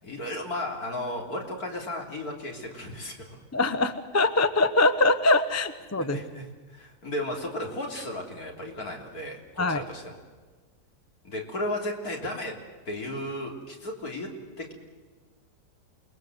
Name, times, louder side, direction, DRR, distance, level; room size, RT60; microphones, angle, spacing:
voice 1, 0.0-3.4 6.0-10.2 11.2-12.5 12.9-14.3 14.6-14.7, left 1 dB, 60° left, 1 dB, 3.8 m, -34 dB
voice 2, 3.5-6.2 9.6-9.8, left 2 dB, 15° left, 10 dB, 0.6 m, -23 dB
28.5 x 20.5 x 8.0 m, 1.4 s
omnidirectional pair, 1.8 m